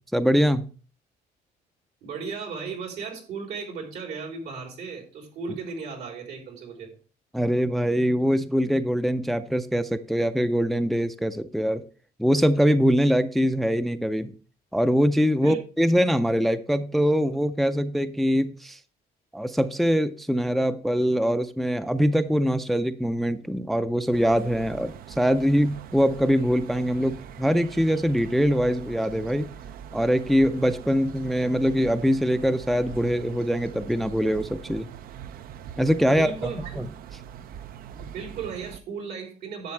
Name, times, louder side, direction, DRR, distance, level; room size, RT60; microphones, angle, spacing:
voice 1, 0.1-0.7 7.3-11.8 12.2-14.3 14.7-18.8 19.3-29.5 29.9-34.9 35.8-36.9, equal, ahead, 0.4 m, -23 dB
voice 2, 2.0-6.9 15.3-15.6 36.1-36.9 37.9-39.7, right 5 dB, 80° right, 3.7 m, -36 dB
sound 1, 24.1-38.8, right 9 dB, 60° right, 0.5 m, -42 dB
10.5 x 7.6 x 3.2 m
cardioid pair, 110°, 17 cm